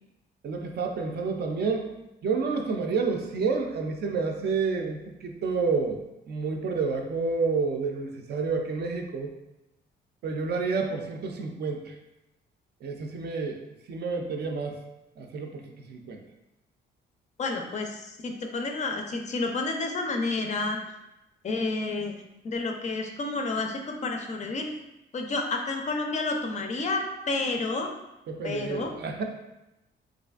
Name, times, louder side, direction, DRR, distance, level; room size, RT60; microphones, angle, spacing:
voice 1, 0.4-1.9 2.2-6.0 6.3-9.3 10.2-11.9 12.8-13.6 13.9-14.8 15.2-16.2 28.3-29.2, right 4 dB, 55° right, 3 dB, 0.4 m, -29 dB
voice 2, 17.4-20.8 21.4-22.2 22.4-24.7 25.1-27.9 28.4-28.9, left 3 dB, 35° left, 3 dB, 0.4 m, -30 dB
3.1 x 2.4 x 2.3 m, 0.93 s
cardioid pair, 90°, 20 cm